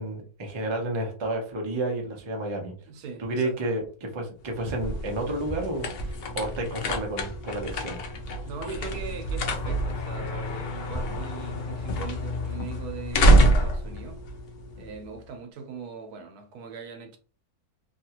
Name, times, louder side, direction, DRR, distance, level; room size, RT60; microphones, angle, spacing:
voice 1, 0.0-2.7 3.2-8.0, right 1 dB, 40° right, 0.4 m, -31 dB
voice 2, 2.9-3.8 8.5-14.2 14.8-17.2, right 5 dB, 80° right, 1.1 m, -40 dB
sound 1, 4.4-15.2, right 1 dB, 85° left, 0.5 m, -26 dB
2.8 x 2.4 x 2.8 m
omnidirectional pair, 1.7 m